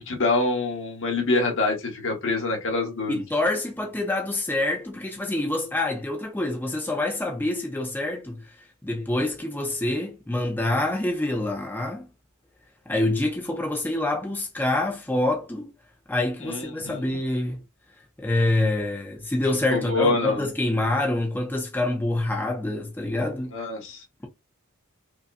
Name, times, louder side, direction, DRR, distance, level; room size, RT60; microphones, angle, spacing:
voice 1, 0.1-3.2 16.4-17.0 19.7-20.4 23.5-24.0, left 3 dB, 60° left, 1.3 m, -25 dB
voice 2, 3.1-8.5 8.8-12.1 12.9-15.7 16.1-17.6 18.2-23.5, left 2 dB, 10° left, 0.6 m, -26 dB
5.1 x 2.2 x 2.5 m
head